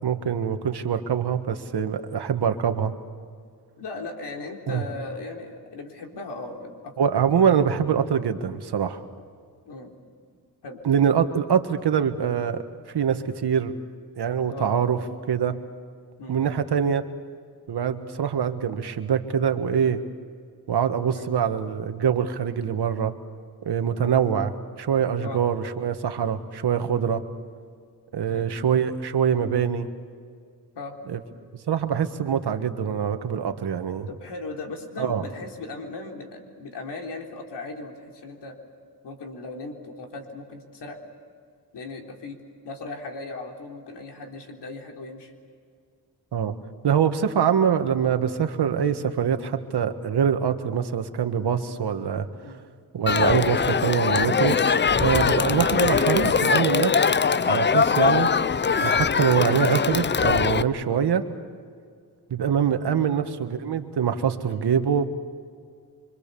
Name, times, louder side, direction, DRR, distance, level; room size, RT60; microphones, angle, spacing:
voice 1, 0.0-2.9 4.7-4.8 7.0-9.0 10.8-12.6 12.9-13.7 14.2-15.0 15.3-15.6 16.3-17.0 17.7-20.0 20.7-23.1 23.6-27.2 28.1-29.9 31.1-31.2 31.7-34.1 35.0-35.2 46.3-46.5 46.8-52.3 52.9-54.6 55.0-57.1 57.5-58.3 58.8-61.2 62.3-65.1, right 7 dB, 70° right, 7 dB, 1.7 m, -24 dB
voice 2, 3.8-7.6 9.6-10.0 10.6-10.8 14.5-14.7 16.2-16.4 21.1-21.3 25.2-25.5 28.3-28.5 30.7-30.9 34.1-38.6 39.0-41.0 41.7-42.4 42.6-45.3 52.4-52.6 60.9-61.0 62.9-63.1 64.5-64.6, left 3 dB, 75° left, 2 dB, 3.8 m, -38 dB
Crowd, 53.1-60.6, left 6 dB, 25° left, 0.6 m, -21 dB
26.0 x 25.5 x 7.0 m, 2.1 s
cardioid pair, 85°, 41 cm